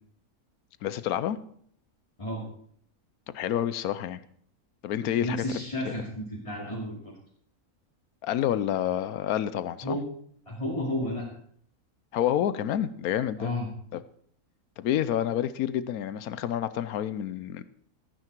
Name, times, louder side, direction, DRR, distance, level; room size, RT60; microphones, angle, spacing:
voice 1, 0.8-1.4 3.3-4.2 4.8-5.4 8.2-10.0 12.1-13.5 13.9-14.0 14.8-17.6, left 10 dB, 75° left, 15 dB, 1.1 m, -28 dB
voice 2, 5.2-7.1 9.8-10.0 10.5-11.2 13.4-13.7, left 1 dB, 20° left, -6 dB, 2.6 m, -32 dB
14.0 x 9.7 x 4.5 m, 0.63 s
omnidirectional pair, 1.6 m